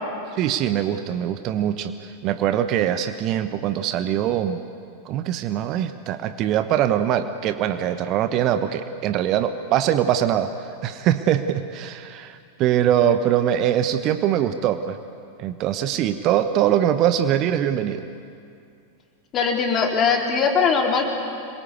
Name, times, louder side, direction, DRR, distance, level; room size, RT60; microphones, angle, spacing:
voice 1, 0.3-4.6 5.0-15.0 15.4-18.1, right 10 dB, 40° right, 10 dB, 1.1 m, -22 dB
voice 2, 19.3-21.1, left 5 dB, 30° left, 1 dB, 4.1 m, -20 dB
26.0 x 23.0 x 8.4 m, 2.4 s
figure-of-eight pair, 90°, 0 cm